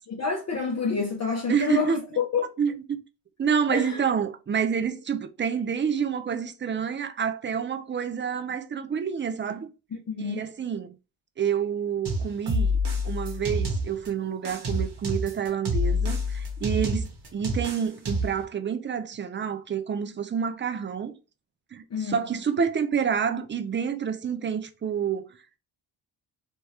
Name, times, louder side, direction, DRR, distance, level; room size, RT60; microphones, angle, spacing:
voice 1, 0.1-2.5 3.7-4.0 9.9-10.5 21.9-22.2, left 6 dB, 35° left, 0.7 m, -28 dB
voice 2, 1.5-2.0 2.6-3.0 3.4-9.7 10.2-10.9 11.4-12.8 13.0-21.1 21.7-25.4, right 7 dB, 25° right, 0.4 m, -28 dB
sound 1, 12.1-14.1 14.5-18.4, left 1 dB, 55° right, 1.2 m, -28 dB
2.9 x 2.2 x 3.2 m
cardioid pair, 70°, 48 cm